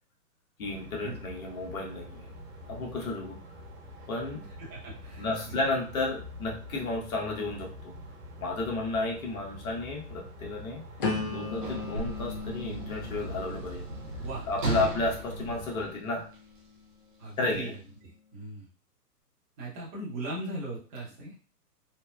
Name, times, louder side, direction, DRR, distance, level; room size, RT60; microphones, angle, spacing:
voice 1, 0.6-2.3 2.7-3.4 4.1-4.5 5.2-7.9 8.4-10.8 11.3-13.9 14.5-16.3 17.4-17.7, left 2 dB, 60° left, 0 dB, 1.1 m, -32 dB
sound 1, 0.6-15.9, left 1 dB, 60° right, 1.2 m, -46 dB
voice 2, 4.7-5.6 14.2-14.5 17.2-17.8 18.3-18.7 19.6-21.5, right 2 dB, 15° right, -6 dB, 0.8 m, -39 dB
sound 2, 11.0-16.9 17.4-17.8, left 4 dB, 35° left, 0.5 m, -38 dB
Sliding door / Slam, 11.2-16.6 17.5-17.6, right 3 dB, 35° right, 0.4 m, -37 dB
3.2 x 2.1 x 2.2 m, 0.38 s
hypercardioid pair, 140°, 48 cm